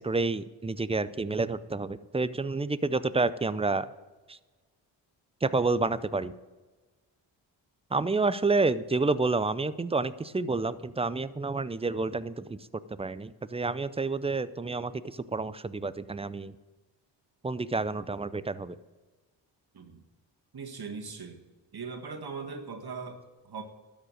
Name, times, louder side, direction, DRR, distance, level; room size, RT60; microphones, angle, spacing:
voice 1, 0.0-3.9 4.3-4.4 5.4-6.3 7.9-12.6 13.0-16.5 17.4-18.8, right 3 dB, 15° right, 16 dB, 0.5 m, -29 dB
voice 2, 20.5-21.4 21.7-23.6, right 5 dB, 50° right, 4 dB, 1.8 m, -40 dB
12.5 x 5.2 x 8.9 m, 1.3 s
supercardioid pair, 50°, 48 cm